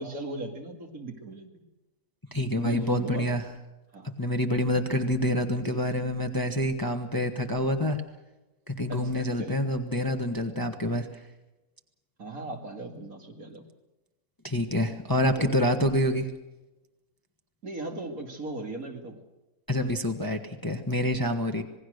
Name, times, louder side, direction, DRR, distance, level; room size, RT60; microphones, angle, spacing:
voice 1, 0.0-1.5 2.5-3.3 3.9-4.1 5.7-5.8 8.9-9.6 12.2-13.6 15.2-15.6 17.6-19.2 21.6-21.7, right 3 dB, 60° right, 3 dB, 2.9 m, -37 dB
voice 2, 2.3-3.4 4.2-8.0 8.7-11.1 14.4-16.3 19.7-21.6, left 1 dB, 15° left, 5 dB, 1.2 m, -27 dB
26.5 x 19.5 x 6.6 m, 1.1 s
omnidirectional pair, 1.6 m